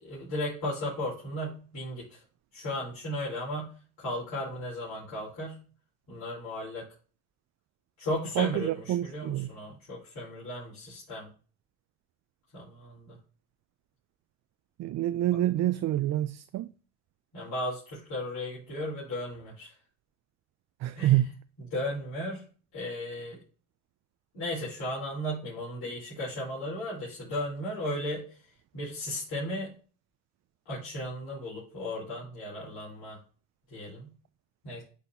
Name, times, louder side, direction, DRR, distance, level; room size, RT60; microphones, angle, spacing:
voice 1, 0.0-2.2 2.5-3.7 4.0-5.6 6.1-6.8 8.0-11.3 12.5-13.2 15.3-15.4 17.3-19.7 20.9-21.2 21.7-22.4 22.7-23.4 24.3-28.2 28.7-29.7 30.7-33.2 33.7-34.1 34.6-34.8, left 1 dB, 65° left, 4.1 m, -35 dB
voice 2, 8.4-9.5 14.8-16.7 20.8-21.4, right 14 dB, 40° right, 0.4 m, -27 dB
11.5 x 4.2 x 2.7 m
supercardioid pair, 70°, 42 cm